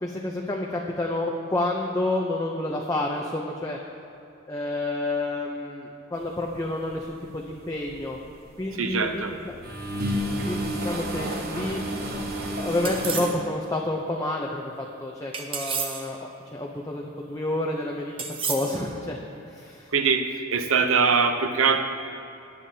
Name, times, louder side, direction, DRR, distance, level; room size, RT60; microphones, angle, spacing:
voice 1, 0.0-3.8 4.5-8.2 8.6-9.5 10.4-11.8 12.6-18.1 18.4-19.2 19.5-19.9, left 2 dB, 15° left, -1 dB, 0.6 m, -29 dB
sound 1, 6.9-7.2 7.6-9.0 9.4-13.3, equal, 50° right, 1.0 m, -30 dB
voice 2, 8.7-9.4 19.9-21.8, right 5 dB, 80° right, 7 dB, 0.7 m, -22 dB
sound 2, 12.8-13.4 15.3-16.1 18.2-18.8, right 6 dB, 25° right, 0.6 m, -31 dB
17.5 x 8.4 x 2.8 m, 2.9 s
head